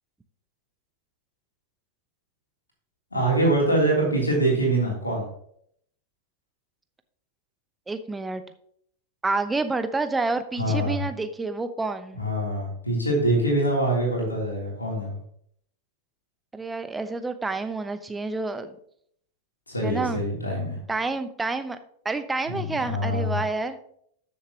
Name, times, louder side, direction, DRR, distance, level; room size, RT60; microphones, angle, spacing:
voice 1, 3.1-5.3 10.6-11.1 12.1-15.2 19.7-20.8 22.4-23.4, right 1 dB, 80° left, -1 dB, 3.3 m, -24 dB
voice 2, 7.9-8.4 9.2-12.2 16.5-18.8 19.8-20.2 20.9-21.8 22.0-23.8, right 3 dB, 10° right, 10 dB, 0.9 m, -28 dB
13.5 x 7.1 x 3.0 m, 0.67 s
figure-of-eight pair, 90°, 0 cm